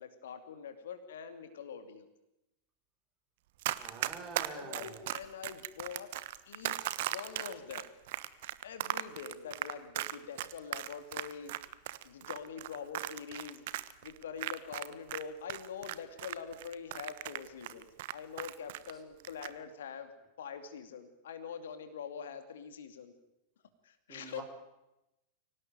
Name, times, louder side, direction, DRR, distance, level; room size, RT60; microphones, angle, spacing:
voice 1, 0.0-2.1 4.5-6.1 6.5-7.9 8.6-11.5 12.0-13.7 14.0-20.1 20.4-23.1 23.8-24.4, left 7 dB, 60° left, 8 dB, 2.5 m, -44 dB
Run, 3.6-15.2 15.5-18.9 19.2-19.5, right 15 dB, 55° right, 1.1 m, -37 dB
voice 2, 3.8-5.0 24.1-24.4, right 5 dB, 25° right, 4 dB, 6.0 m, -46 dB
24.5 x 17.5 x 9.3 m, 0.93 s
figure-of-eight pair, 90°, 0 cm